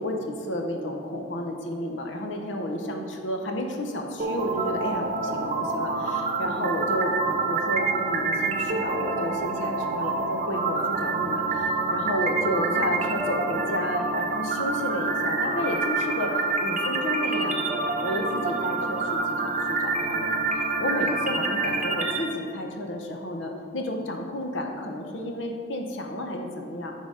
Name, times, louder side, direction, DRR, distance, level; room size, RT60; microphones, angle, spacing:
voice 1, 0.0-20.3 20.8-26.9, left 1 dB, 85° left, 3 dB, 0.9 m, -31 dB
sound 1, 4.2-22.2, right 3 dB, 40° right, 0.7 m, -27 dB
10.0 x 4.0 x 5.0 m, 2.2 s
head